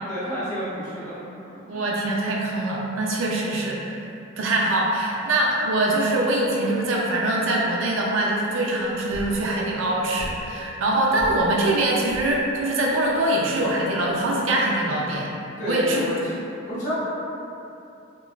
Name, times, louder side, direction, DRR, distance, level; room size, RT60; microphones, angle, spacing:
voice 1, 0.1-1.2 1.5-1.8 15.6-16.4 16.7-16.9, equal, 40° left, -11 dB, 0.7 m, -30 dB
voice 2, 1.7-4.1 4.4-15.3 15.7-16.2, right 1 dB, 80° right, -2 dB, 0.4 m, -23 dB
sound 1, 8.8-14.8, equal, 80° left, 0.4 m, -39 dB
2.9 x 2.2 x 2.3 m, 2.8 s
head